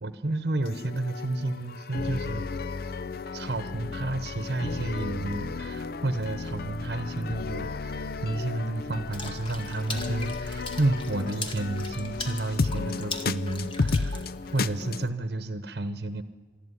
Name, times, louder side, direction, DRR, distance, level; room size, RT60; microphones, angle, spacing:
voice 1, 0.0-2.5 3.3-14.3 14.5-16.2, right 2 dB, 60° right, 11 dB, 1.0 m, -31 dB
sound 1, 0.6-15.1, left 4 dB, 55° left, 0.5 m, -33 dB
Water / Splash splatter, 9.1-14.9, left 3 dB, 30° left, 1.9 m, -40 dB
23.5 x 13.0 x 9.8 m, 1.5 s
head